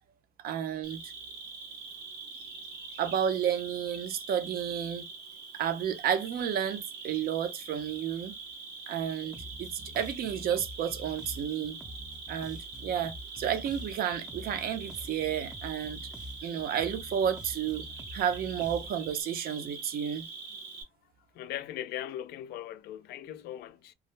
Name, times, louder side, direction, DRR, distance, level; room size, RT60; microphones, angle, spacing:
voice 1, 0.4-1.0 3.0-5.0 5.5-8.4 8.9-11.8 12.3-16.0 16.4-17.8 18.1-20.3, right 9 dB, 65° right, 0.6 m, -31 dB
Cricket, 0.8-20.8, right 4 dB, 85° right, 1.1 m, -44 dB
Bass guitar, 9.3-19.2, equal, 5° right, 0.4 m, -46 dB
voice 2, 21.3-23.9, left 12 dB, 70° left, 0.4 m, -39 dB
2.3 x 2.0 x 3.2 m
cardioid pair, 110°, 17 cm